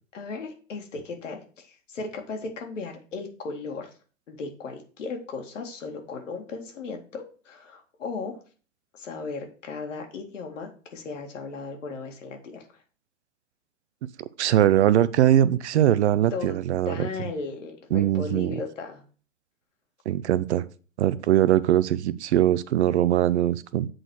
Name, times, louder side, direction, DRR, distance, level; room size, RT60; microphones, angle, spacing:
voice 1, 0.1-3.9 4.3-8.4 8.9-12.6 16.3-16.6 16.9-19.0, left 4 dB, 70° left, 4 dB, 2.2 m, -36 dB
voice 2, 14.4-17.0 17.9-18.5 20.1-20.6 21.0-23.9, right 12 dB, 60° right, 16 dB, 0.7 m, -21 dB
7.7 x 4.1 x 6.2 m, 0.38 s
figure-of-eight pair, 110°, 39 cm